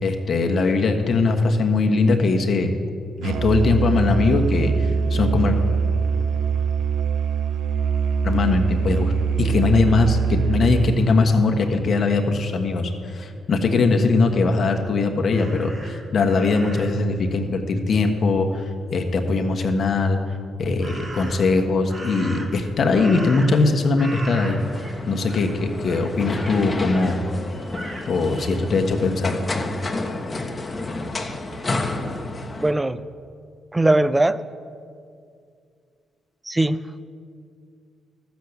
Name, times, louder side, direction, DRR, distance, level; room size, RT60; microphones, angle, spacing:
voice 1, 0.0-2.8 3.2-5.6 8.2-9.1 9.4-20.2 20.6-24.6 25.1-27.2 28.1-29.4, left 3 dB, 55° left, 4 dB, 1.4 m, -21 dB
Musical instrument, 3.2-11.0, right 6 dB, 80° right, 0.6 m, -23 dB
Crow, 15.3-17.0 20.8-21.5 21.9-23.7 24.0-25.0 25.3-25.5 25.8-27.2 27.7-28.1, right 2 dB, 40° right, 2.2 m, -38 dB
sound 1, 24.6-32.7, left 2 dB, 30° left, 1.3 m, -30 dB
voice 2, 32.6-33.0 33.7-34.4 36.5-37.0, right 2 dB, 15° right, 15 dB, 0.5 m, -20 dB
13.0 x 7.2 x 8.1 m, 2.3 s
supercardioid pair, 65°, 0 cm